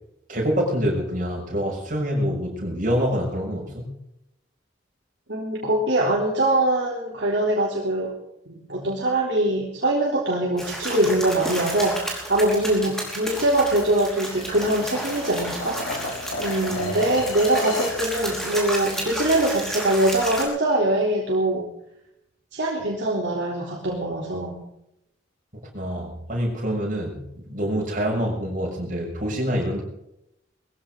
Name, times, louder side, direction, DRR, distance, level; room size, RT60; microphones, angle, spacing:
voice 1, 0.3-3.9 16.7-17.1 25.7-29.8, equal, 40° right, 0 dB, 6.6 m, -26 dB
voice 2, 5.3-8.1 8.5-21.7 22.5-24.6, right 1 dB, 55° right, -4 dB, 3.6 m, -23 dB
sound 1, 10.6-20.4, equal, ahead, 4.8 m, -32 dB
sound 2, 13.7-18.0, left 1 dB, 80° left, 3.6 m, -32 dB
21.5 x 15.5 x 4.0 m, 0.80 s
head